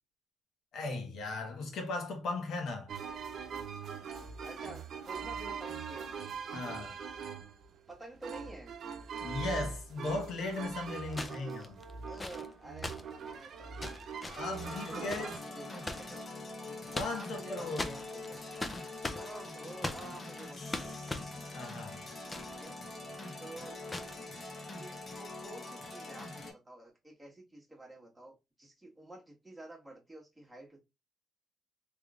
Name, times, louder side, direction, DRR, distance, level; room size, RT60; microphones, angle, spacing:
voice 1, 0.7-2.9 6.5-6.9 9.2-11.6 14.3-15.3 16.9-17.9 21.5-22.1, left 2 dB, 70° left, 1.3 m, -37 dB
sound 1, 2.9-15.4, right 6 dB, 65° right, 0.7 m, -42 dB
voice 2, 4.4-6.1 6.6-7.0 7.9-8.7 11.1-11.7 12.1-16.3 17.0-18.5 19.1-21.1 22.5-22.8 23.4-23.7 24.5-30.8, right 1 dB, 10° right, 1.6 m, -50 dB
sound 2, 9.3-9.4 11.1-16.2 16.7-17.4 17.8-22.7 23.0-23.1 23.9-24.2 25.1-25.3, left 2 dB, 20° left, 0.6 m, -41 dB
sound 3, 14.5-26.5, left 2 dB, 35° left, 1.2 m, -44 dB
3.5 x 3.3 x 2.4 m
cardioid pair, 90°, 0 cm